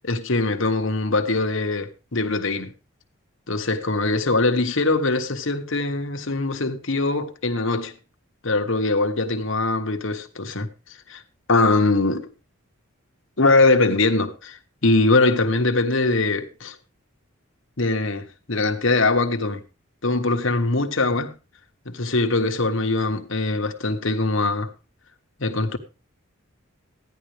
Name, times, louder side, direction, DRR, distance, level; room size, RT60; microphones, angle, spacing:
voice 1, 0.0-2.7 3.5-7.9 8.4-10.7 11.1-11.2 11.5-12.2 13.4-16.8 17.8-19.6 20.0-21.3 21.8-24.7 25.4-25.8, left 2 dB, 65° left, 1.3 m, -22 dB
15.5 x 10.5 x 3.4 m
head